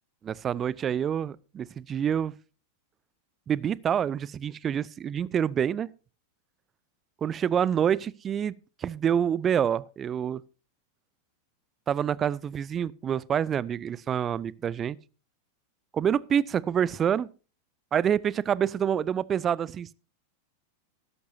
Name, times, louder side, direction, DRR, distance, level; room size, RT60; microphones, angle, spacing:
voice 1, 0.2-2.3 3.5-5.9 7.2-8.5 8.8-10.4 11.9-15.0 15.9-17.3 17.9-19.9, right 8 dB, 25° right, 0.5 m, -27 dB
16.5 x 13.0 x 2.7 m
figure-of-eight pair, 90°, 0 cm